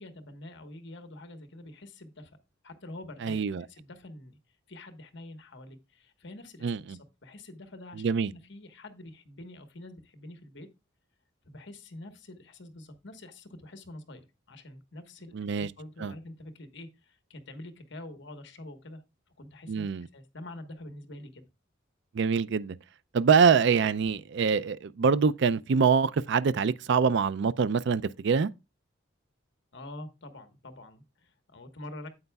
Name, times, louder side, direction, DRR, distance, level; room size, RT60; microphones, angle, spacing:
voice 1, 0.0-2.4 2.6-3.4 3.7-4.4 4.7-10.7 11.4-19.0 19.4-21.4 29.7-32.1, left 1 dB, 60° left, 1.3 m, -46 dB
voice 2, 3.2-3.6 6.6-6.8 8.0-8.3 15.3-15.7 16.0-16.1 19.7-20.1 22.1-22.7 23.1-28.5, right 6 dB, 60° right, 0.4 m, -24 dB
9.4 x 7.9 x 2.3 m
head